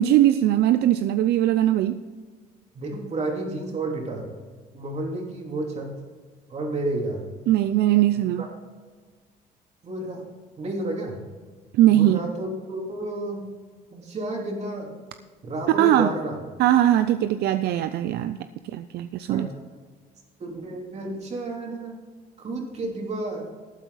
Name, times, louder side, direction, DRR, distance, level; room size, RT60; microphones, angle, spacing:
voice 1, 0.0-2.0 7.5-8.4 11.7-12.3 15.8-16.1 16.6-18.4 18.6-19.5, right 13 dB, 75° right, 11 dB, 0.5 m, -20 dB
voice 2, 2.7-4.3 4.7-5.9 6.5-7.2 8.2-8.5 9.8-10.2 10.6-11.2 11.9-13.5 13.9-14.9 15.4-16.4 19.3-19.5 20.4-22.0 22.4-23.5, right 2 dB, 40° right, 0 dB, 3.2 m, -31 dB
12.5 x 9.1 x 4.1 m, 1.5 s
cardioid pair, 110°, 17 cm